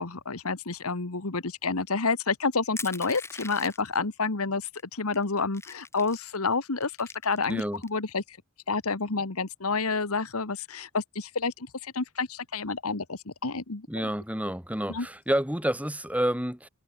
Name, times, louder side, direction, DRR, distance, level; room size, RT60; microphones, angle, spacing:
voice 1, 0.0-8.4 8.7-13.9 14.9-15.1, left 4 dB, 75° left, 1.6 m, -29 dB
Crushing, 2.8-4.0 4.7-4.8 5.1-6.4 6.8-7.9, left 3 dB, 10° left, 7.5 m, -41 dB
voice 2, 7.5-7.8 13.9-16.7, right 1 dB, 5° right, 4.0 m, -29 dB
head